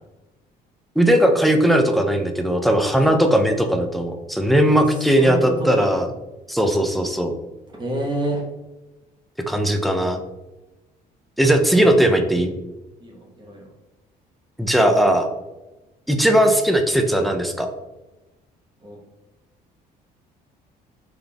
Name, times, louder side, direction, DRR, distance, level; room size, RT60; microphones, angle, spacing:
voice 1, 1.0-6.1 6.5-7.3 9.5-10.2 11.4-12.5 14.6-15.3 16.1-17.7, right 1 dB, ahead, 4 dB, 0.4 m, -18 dB
voice 2, 5.0-6.0 7.8-8.4 13.0-13.6 18.8-19.0, right 1 dB, 25° right, -2 dB, 1.0 m, -28 dB
3.8 x 3.2 x 2.2 m, 1.1 s
cardioid pair, 110°, 17 cm